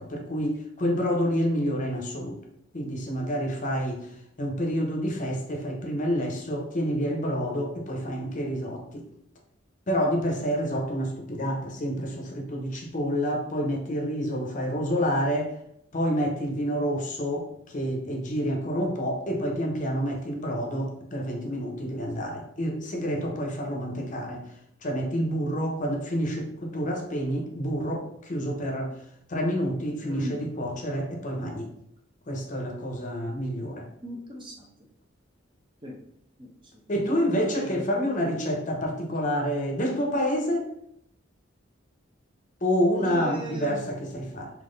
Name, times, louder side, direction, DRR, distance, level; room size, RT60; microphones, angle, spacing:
voice 1, 0.0-2.4 2.7-4.1 4.4-9.0 9.9-15.5 15.9-17.5 17.7-24.4 24.8-28.9 29.3-31.7 32.3-33.9 36.9-40.7 42.6-44.5, equal, 40° left, 1 dB, 0.8 m, -28 dB
voice 2, 30.0-30.4 34.0-34.7 35.8-36.0 36.4-36.8 37.6-37.8 43.0-43.9, left 1 dB, 25° right, -1 dB, 0.8 m, -37 dB
3.8 x 2.9 x 3.8 m, 0.74 s
head